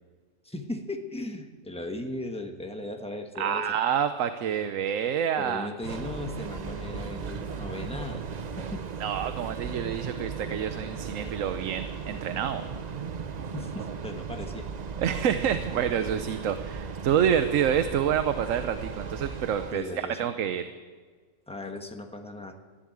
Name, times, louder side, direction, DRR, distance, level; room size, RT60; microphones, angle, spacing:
voice 1, 0.4-3.7 5.4-8.3 8.6-8.8 13.5-14.7 19.7-20.2 21.5-22.6, left 2 dB, 5° left, 4 dB, 1.2 m, -37 dB
voice 2, 3.4-5.7 9.0-12.6 15.0-20.7, right 8 dB, 85° right, 10 dB, 1.1 m, -28 dB
Train, 5.8-19.7, right 5 dB, 45° right, 0.6 m, -36 dB
14.0 x 11.0 x 8.7 m, 1.5 s
omnidirectional pair, 1.3 m